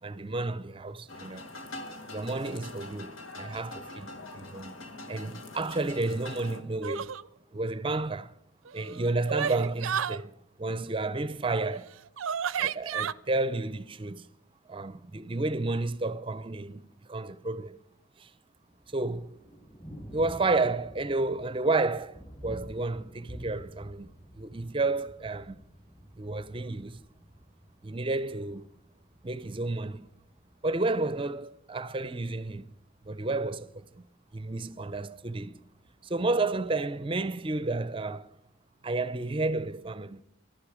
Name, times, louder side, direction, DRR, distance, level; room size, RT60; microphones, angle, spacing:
voice 1, 0.0-1.5 2.1-4.7 5.1-7.1 7.5-8.3 8.7-11.9 12.6-14.3 14.7-17.8 18.2-18.3 18.9-19.3 20.1-24.1 24.3-25.6 26.2-27.0 27.8-28.7 29.2-30.1 30.6-32.7 33.0-34.1 34.3-35.6 36.0-38.3 38.8-40.2, right 2 dB, 25° right, 0.6 m, -31 dB
sound 1, 1.1-6.6, left 2 dB, 85° left, 1.7 m, -43 dB
sound 2, 6.8-7.2 8.6-10.2 11.7-11.8 12.2-13.1, right 8 dB, 85° right, 0.5 m, -31 dB
Thunder, 18.6-36.6, equal, 25° left, 6.5 m, -51 dB
21.5 x 12.5 x 4.9 m
head